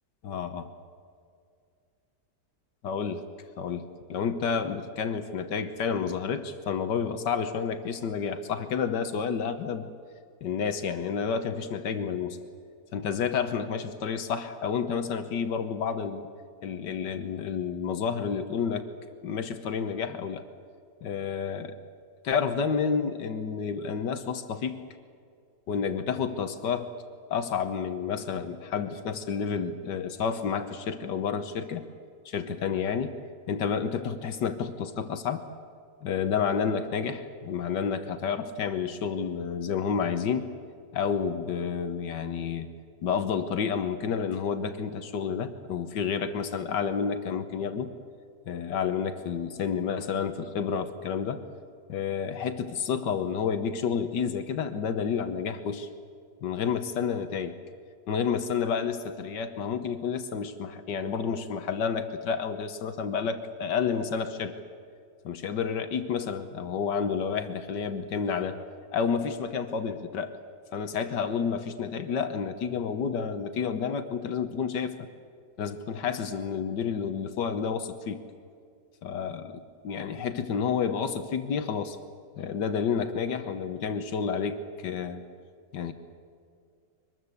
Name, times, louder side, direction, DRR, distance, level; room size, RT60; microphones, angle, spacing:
voice 1, 0.3-0.6 2.8-3.2 3.6-9.9 10.4-12.4 12.9-16.3 16.6-18.9 19.2-20.4 21.0-21.8 22.2-24.8 25.7-26.9 27.3-31.8 32.3-33.2 33.5-35.4 36.0-40.5 40.9-42.7 43.0-47.9 48.5-51.4 51.9-55.9 56.4-57.6 58.1-64.5 65.2-68.6 68.9-70.3 70.7-75.0 75.6-78.2 79.0-82.0 82.4-85.2 85.7-85.9, left 6 dB, 80° left, 9 dB, 1.7 m, -30 dB
24.0 x 20.5 x 8.2 m, 2.3 s
omnidirectional pair, 1.9 m